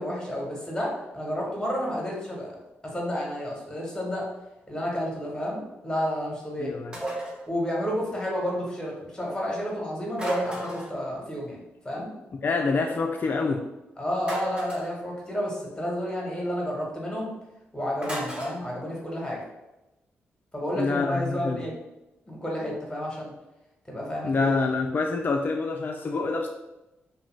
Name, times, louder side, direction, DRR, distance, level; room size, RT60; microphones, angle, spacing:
voice 1, 0.0-2.5 2.8-4.3 4.7-6.7 7.5-11.6 11.8-12.1 14.0-17.3 17.7-19.4 20.5-21.7 22.3-23.3 23.9-24.5, equal, 15° left, -3 dB, 1.1 m, -31 dB
voice 2, 6.6-6.9 12.4-13.6 20.8-21.6 24.2-26.5, left 4 dB, 45° left, 2 dB, 0.3 m, -26 dB
sound 1, 6.9-7.4 10.1-11.0 14.2-14.9 18.0-18.6, right 1 dB, 20° right, 1.1 m, -33 dB
2.5 x 2.2 x 3.1 m, 0.97 s
supercardioid pair, 55°, 5 cm